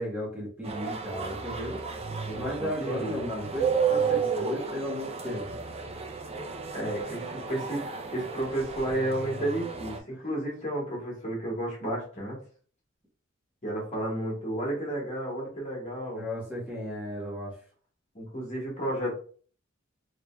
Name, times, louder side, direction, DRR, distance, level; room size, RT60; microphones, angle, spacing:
voice 1, 0.0-1.8 2.3-5.6 10.1-10.2 16.1-17.6, left 1 dB, 10° right, -5 dB, 1.2 m, -35 dB
sound 1, 0.6-10.0, right 6 dB, 30° right, 0.5 m, -32 dB
voice 2, 2.3-3.2 6.7-7.8 8.1-12.4 13.6-16.3 18.1-19.1, right 1 dB, 35° left, -3 dB, 1.5 m, -32 dB
3.8 x 3.4 x 2.3 m, 0.43 s
head